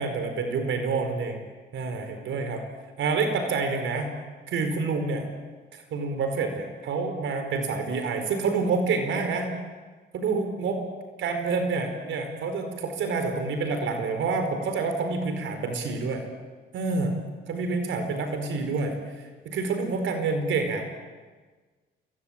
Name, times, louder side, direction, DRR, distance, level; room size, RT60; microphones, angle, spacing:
voice 1, 0.0-1.4 1.7-2.6 3.0-4.1 4.5-5.3 5.7-9.5 10.1-10.8 11.2-16.2 16.7-17.1 17.5-20.8, right 4 dB, 75° right, 6 dB, 4.7 m, -28 dB
29.5 x 23.0 x 8.9 m, 1.3 s
cardioid pair, 90°, 20 cm